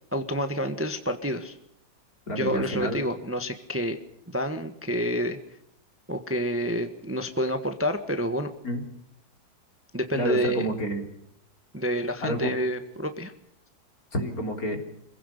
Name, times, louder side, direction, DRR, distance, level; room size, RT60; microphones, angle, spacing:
voice 1, 0.1-1.6 2.3-4.0 4.3-5.4 6.1-8.5 9.9-10.7 11.7-13.3, equal, 10° right, 7 dB, 1.3 m, -28 dB
voice 2, 2.3-3.0 8.6-8.8 10.1-11.1 12.2-12.5 14.1-14.8, equal, 50° left, 3 dB, 4.0 m, -29 dB
26.0 x 16.5 x 6.7 m, 0.78 s
omnidirectional pair, 1.9 m